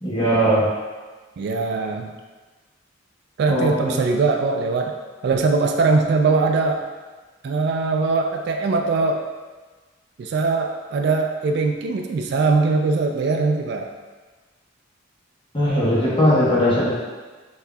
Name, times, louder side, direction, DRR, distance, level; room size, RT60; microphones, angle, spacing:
voice 1, 0.0-0.7 3.5-4.0 15.5-16.9, equal, 25° left, -7 dB, 1.1 m, -19 dB
voice 2, 1.4-2.1 3.4-4.9 5.2-6.8 7.4-9.2 10.2-13.9, right 3 dB, 60° right, 3 dB, 0.3 m, -21 dB
5.8 x 2.7 x 2.3 m, 1.3 s
head